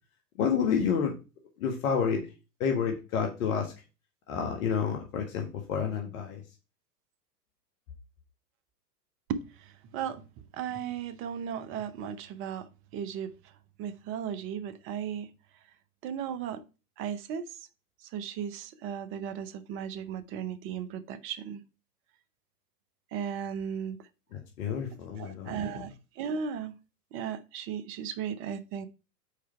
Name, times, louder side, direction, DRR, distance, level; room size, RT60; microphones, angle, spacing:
voice 1, 0.4-1.1 1.6-2.2 2.6-3.7 4.3-6.4 24.3-25.6, left 7 dB, 55° left, 1.6 m, -29 dB
voice 2, 9.3-10.3 10.5-13.4 13.8-15.3 16.0-16.6 17.0-17.6 18.0-21.6 23.1-24.1 25.2-26.7 27.1-28.9, right 8 dB, 25° right, 0.6 m, -36 dB
5.0 x 4.5 x 5.5 m
hypercardioid pair, 105°, 48 cm